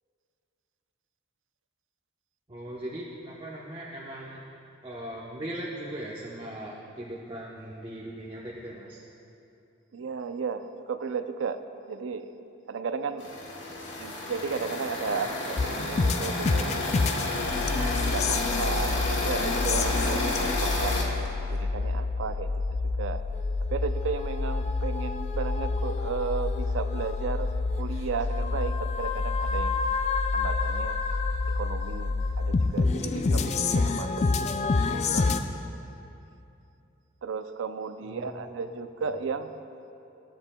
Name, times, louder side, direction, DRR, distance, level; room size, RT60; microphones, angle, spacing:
voice 1, 2.5-4.4 4.8-9.0 38.0-38.7 39.0-39.1, right 1 dB, 25° right, -5 dB, 0.8 m, -39 dB
voice 2, 9.9-11.6 11.9-12.3 12.7-13.3 14.0-16.9 18.0-21.1 21.5-22.5 23.0-23.2 23.7-27.5 27.8-29.8 30.3-31.0 31.6-34.7 35.1-35.3 37.2-39.5, right 5 dB, 85° right, 10 dB, 0.5 m, -34 dB
sound 1, 13.2-21.0, left 2 dB, 70° left, 1.7 m, -31 dB
sound 2, 15.6-35.4, left 3 dB, 35° left, 0.3 m, -28 dB
22.0 x 8.8 x 2.2 m, 2.8 s
head